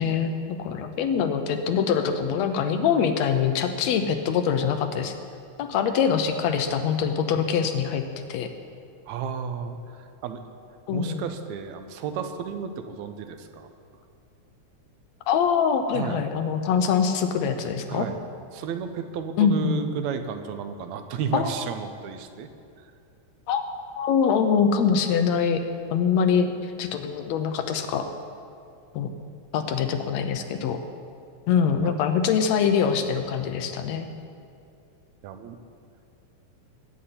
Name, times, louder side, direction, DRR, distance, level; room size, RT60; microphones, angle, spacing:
voice 1, 0.0-5.1 5.6-8.0 8.3-8.5 10.9-11.2 15.3-18.1 19.4-19.8 21.3-21.4 23.5-23.6 24.0-25.6 25.9-28.1 28.9-29.1 29.5-30.8 31.5-34.1, left 7 dB, 75° left, 7 dB, 1.9 m, -24 dB
voice 2, 9.1-9.8 10.2-10.4 10.9-13.7 15.9-16.2 17.9-18.2 18.5-22.5 31.8-32.0 35.2-35.6, right 7 dB, 75° right, 8 dB, 2.0 m, -32 dB
20.0 x 9.2 x 4.3 m, 2.4 s
omnidirectional pair, 3.4 m